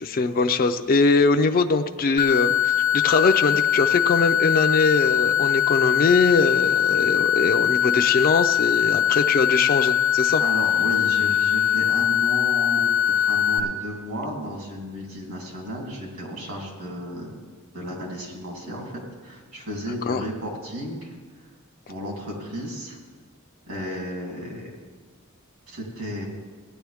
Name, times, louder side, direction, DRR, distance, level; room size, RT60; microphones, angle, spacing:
voice 1, 0.0-10.4 20.1-20.2, left 3 dB, 40° left, 7 dB, 0.5 m, -22 dB
sound 1, 2.2-13.6, left 10 dB, 30° right, 0.8 m, -21 dB
voice 2, 10.4-12.9 13.2-17.4 17.7-21.2 21.9-23.0 23.7-24.8 25.7-26.3, equal, 70° right, -1 dB, 3.2 m, -33 dB
17.0 x 10.0 x 3.5 m, 1.4 s
head